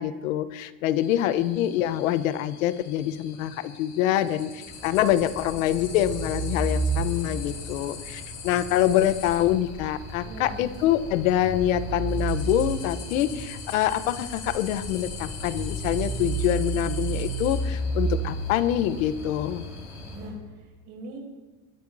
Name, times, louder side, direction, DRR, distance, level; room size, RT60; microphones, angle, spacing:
voice 1, 0.0-19.6, left 12 dB, 85° left, 13 dB, 0.9 m, -25 dB
sound 1, 0.9-20.2, left 6 dB, 40° left, 3.2 m, -43 dB
sound 2, 4.7-20.3, right 3 dB, 10° right, 4.4 m, -32 dB
voice 2, 10.2-10.6 20.1-21.2, right 1 dB, 45° right, -1 dB, 5.1 m, -42 dB
22.0 x 12.5 x 2.7 m, 1.2 s
cardioid pair, 165°, 39 cm